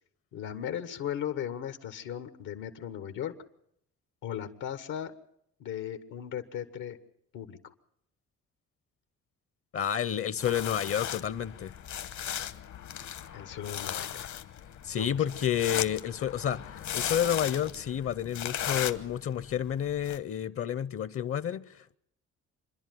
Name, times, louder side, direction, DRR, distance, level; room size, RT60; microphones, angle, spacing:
voice 1, 0.3-3.3 4.2-5.1 5.6-7.0 7.3-7.6 13.3-14.3 15.0-15.2, left 9 dB, 90° left, 1.3 m, -37 dB
voice 2, 9.7-11.8 14.8-22.0, left 9 dB, 50° left, 0.7 m, -30 dB
sound 1, 10.4-20.2, left 10 dB, 70° left, 1.1 m, -37 dB
26.0 x 10.5 x 9.2 m
cardioid pair, 90°, 30 cm